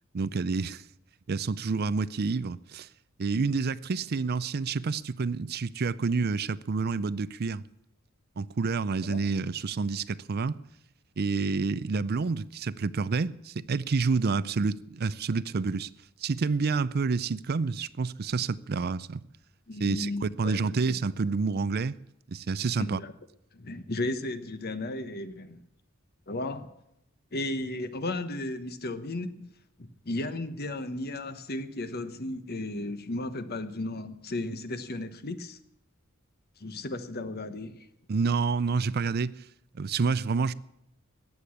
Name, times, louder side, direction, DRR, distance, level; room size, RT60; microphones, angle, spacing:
voice 1, 0.1-0.8 1.3-2.9 3.2-7.6 8.4-10.6 11.2-15.9 16.2-19.2 19.8-22.0 22.3-23.0 38.1-39.3 39.7-40.5, right 4 dB, 50° right, 0.5 m, -28 dB
voice 2, 19.7-20.9 22.6-23.1 23.5-25.6 26.3-26.7 27.3-29.5 30.0-35.6 36.6-37.8, left 2 dB, 50° left, 1.1 m, -34 dB
15.0 x 9.6 x 8.5 m
head